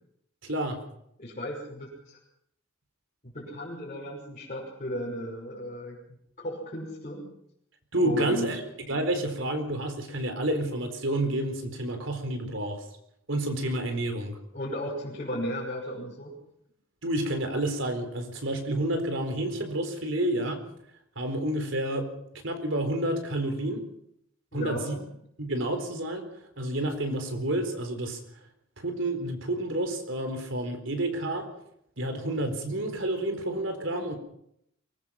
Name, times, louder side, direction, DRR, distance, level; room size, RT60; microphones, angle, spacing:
voice 1, 0.4-0.8 7.9-8.6 8.9-12.8 13.3-14.4 17.0-20.6 21.2-22.1 22.4-23.8 24.5-24.9 25.4-26.2 26.6-28.2 28.8-31.5 32.0-34.1, right 1 dB, 65° right, 6 dB, 4.3 m, -29 dB
voice 2, 1.2-2.2 3.2-6.0 6.4-7.3 8.0-8.5 14.5-16.3 24.5-25.0, equal, 40° left, -6 dB, 6.0 m, -35 dB
23.5 x 20.5 x 5.8 m, 0.74 s
head